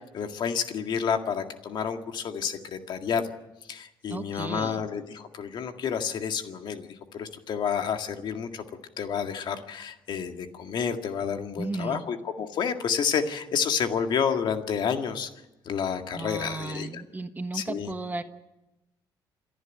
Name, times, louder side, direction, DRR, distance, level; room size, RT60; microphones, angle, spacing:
voice 1, 0.0-3.3 3.7-8.6 9.0-15.3 15.7-17.0 17.5-17.9, left 7 dB, 60° left, 6 dB, 2.0 m, -30 dB
voice 2, 4.1-4.8 11.6-12.0 16.1-18.2, right 3 dB, 20° right, 8 dB, 1.3 m, -34 dB
27.5 x 11.0 x 9.2 m, 0.97 s
cardioid pair, 95°, 9 cm